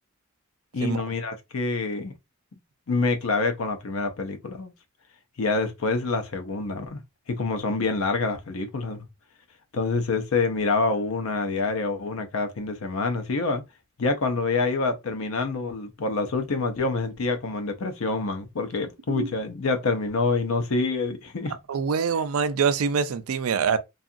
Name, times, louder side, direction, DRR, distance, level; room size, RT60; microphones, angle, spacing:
voice 1, 0.7-2.2 2.9-4.7 5.4-7.0 7.3-9.1 9.7-13.6 14.0-21.5, left 3 dB, 75° left, 0.6 m, -26 dB
voice 2, 21.7-23.8, right 6 dB, 80° right, 0.4 m, -24 dB
2.7 x 2.4 x 2.4 m
head